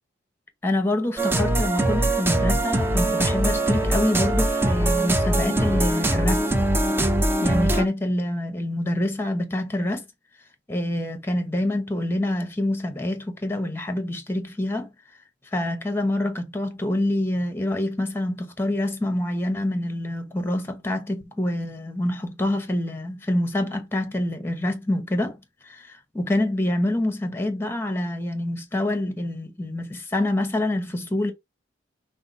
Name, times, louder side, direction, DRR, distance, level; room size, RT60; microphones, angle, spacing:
voice 1, 0.6-6.5 7.4-10.0 10.7-14.9 15.5-31.3, left 1 dB, 15° left, 0.9 m, -26 dB
sound 1, 1.2-7.9, right 1 dB, 15° right, 0.6 m, -22 dB
5.7 x 2.1 x 4.0 m
head